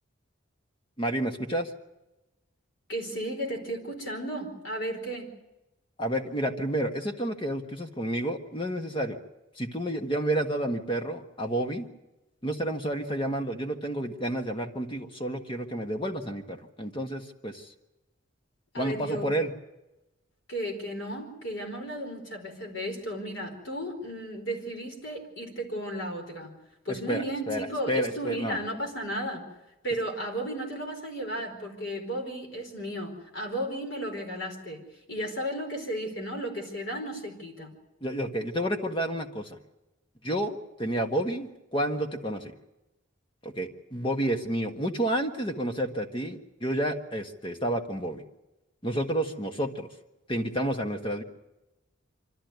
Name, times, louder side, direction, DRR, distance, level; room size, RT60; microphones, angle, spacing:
voice 1, 1.0-1.7 6.0-9.2 9.6-11.9 12.4-17.7 18.8-19.5 27.1-28.6 38.0-39.6 40.2-42.5 43.4-48.2 48.8-49.9 50.3-51.2, right 1 dB, 25° left, 5 dB, 1.6 m, -30 dB
voice 2, 2.9-5.3 18.7-19.3 20.5-26.5 26.8-29.4 29.8-34.8 35.1-37.7, right 1 dB, 70° left, 2 dB, 4.6 m, -34 dB
25.0 x 13.5 x 9.4 m, 0.98 s
head